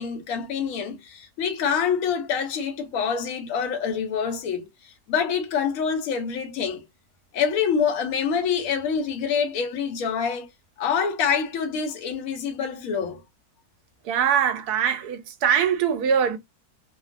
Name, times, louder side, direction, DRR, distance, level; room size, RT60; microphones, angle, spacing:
voice 1, 0.0-6.8 7.3-10.5 10.8-13.2, left 6 dB, 65° left, 1.0 m, -26 dB
voice 2, 14.1-16.4, right 8 dB, 75° right, 1.1 m, -22 dB
2.9 x 2.1 x 2.4 m
omnidirectional pair, 1.7 m